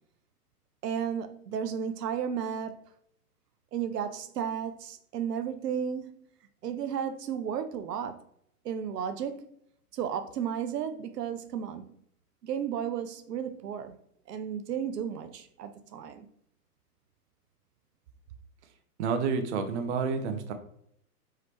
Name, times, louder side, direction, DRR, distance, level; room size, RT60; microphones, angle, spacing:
voice 1, 0.8-2.7 3.7-6.2 6.6-8.2 8.6-9.4 9.9-11.9 12.4-14.0 14.3-16.3, right 8 dB, 90° right, 0.6 m, -33 dB
voice 2, 19.0-20.5, right 5 dB, 45° right, 0.7 m, -29 dB
4.8 x 3.2 x 2.9 m
hypercardioid pair, 125°, 46 cm